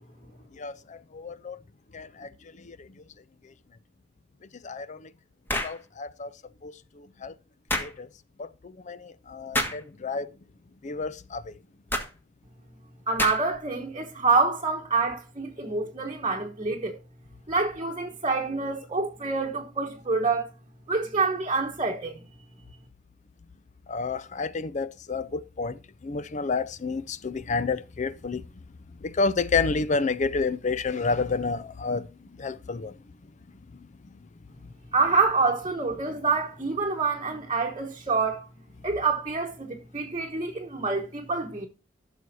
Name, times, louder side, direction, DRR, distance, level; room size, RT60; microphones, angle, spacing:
voice 1, 0.6-1.6 1.9-2.3 2.6-2.9 4.6-5.1 5.6-6.3 6.6-7.3 7.8-8.1 8.4-10.3 10.8-11.5 23.9-28.4 29.0-32.1 32.4-32.9, left 4 dB, 40° left, 0.5 m, -30 dB
sound 1, 5.5-5.8 7.7-7.9 9.5-9.8 11.9-12.1 13.2-13.6, left 1 dB, 10° left, 1.5 m, -28 dB
voice 2, 13.1-17.0 17.5-20.5 20.9-22.2 34.9-38.5 38.8-41.7, right 4 dB, 30° right, 1.1 m, -27 dB
14.0 x 6.3 x 2.7 m
head